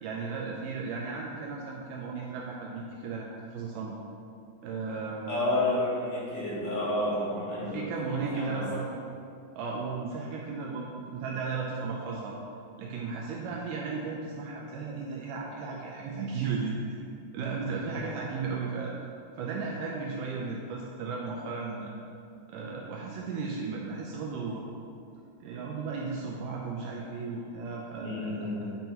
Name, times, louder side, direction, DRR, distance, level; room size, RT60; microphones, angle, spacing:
voice 1, 0.0-4.0 4.6-5.6 7.6-9.0 9.5-12.4 12.8-17.0 17.3-18.9 19.4-21.9 22.5-24.6 25.4-28.5, right 4 dB, 90° right, -3 dB, 1.8 m, -35 dB
voice 2, 5.3-7.8 8.3-8.6 17.8-18.0 28.0-28.7, left 1 dB, 60° left, -7 dB, 2.7 m, -30 dB
9.2 x 5.5 x 2.9 m, 2.5 s
omnidirectional pair, 4.5 m